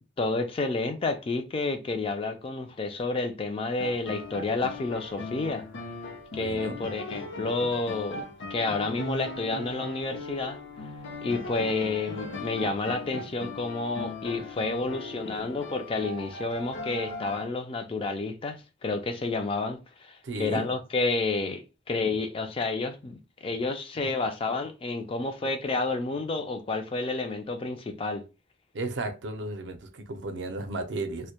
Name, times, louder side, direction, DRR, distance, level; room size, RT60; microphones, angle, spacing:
voice 1, 0.2-5.6 6.3-10.6 11.2-28.2, left 3 dB, 30° left, 0.3 m, -30 dB
sound 1, 3.8-17.5, left 2 dB, 75° left, 0.6 m, -39 dB
voice 2, 6.3-6.8 20.2-20.7 28.7-31.3, right 2 dB, 65° right, 0.5 m, -34 dB
2.1 x 2.1 x 2.8 m
head